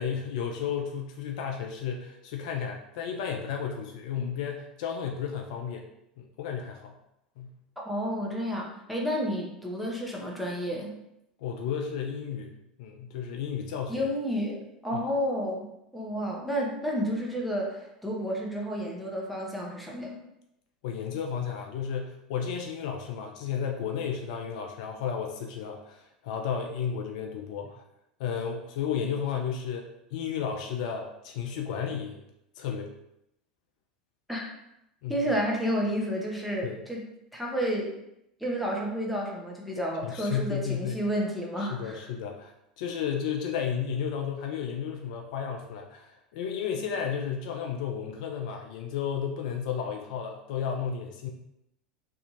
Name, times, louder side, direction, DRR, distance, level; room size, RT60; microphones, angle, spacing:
voice 1, 0.0-5.9 6.2-6.9 7.4-7.5 11.4-14.1 14.9-15.0 20.8-27.8 28.2-29.9 30.1-32.2 32.6-32.9 35.0-35.2 36.6-36.8 40.0-41.0 41.6-51.3, left 7 dB, 60° left, 2 dB, 0.4 m, -33 dB
voice 2, 7.8-11.0 13.9-15.7 15.9-20.2 34.3-34.5 35.1-37.0 37.3-37.9 38.4-42.0, equal, ahead, -3 dB, 0.7 m, -31 dB
2.6 x 2.3 x 2.9 m, 0.82 s
figure-of-eight pair, 85°, 5 cm